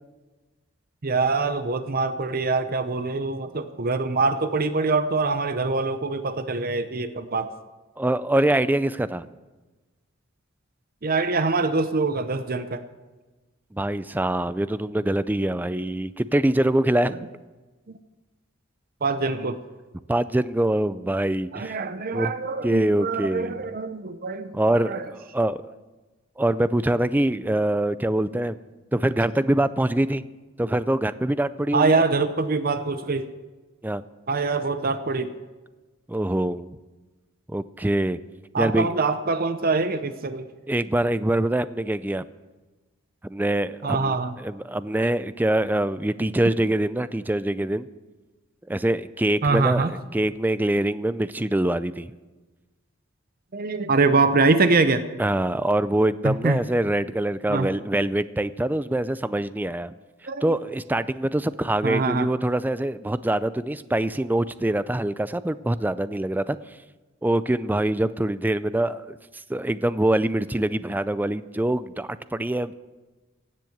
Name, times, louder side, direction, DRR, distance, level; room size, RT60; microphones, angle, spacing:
voice 1, 1.0-7.5 11.0-12.8 17.1-17.3 17.9-18.0 19.0-19.6 21.5-25.1 31.7-33.3 34.3-35.3 38.5-40.5 43.8-44.3 49.4-49.9 53.5-55.1 56.2-56.6 57.5-57.7 60.2-60.6 61.8-62.3, right 3 dB, 45° right, 10 dB, 0.7 m, -24 dB
voice 2, 8.0-9.3 13.7-17.3 20.1-21.7 22.1-22.3 22.6-23.6 24.5-24.9 25.3-25.7 26.4-28.6 28.9-30.3 30.6-32.0 33.8-34.0 36.1-36.7 37.5-38.2 38.6-38.9 40.7-42.3 43.2-44.1 44.4-47.9 48.7-49.8 50.1-52.1 55.2-59.9 60.4-66.8 67.2-72.7, right 1 dB, 10° right, 15 dB, 0.3 m, -24 dB
16.5 x 7.5 x 7.9 m, 1.2 s
head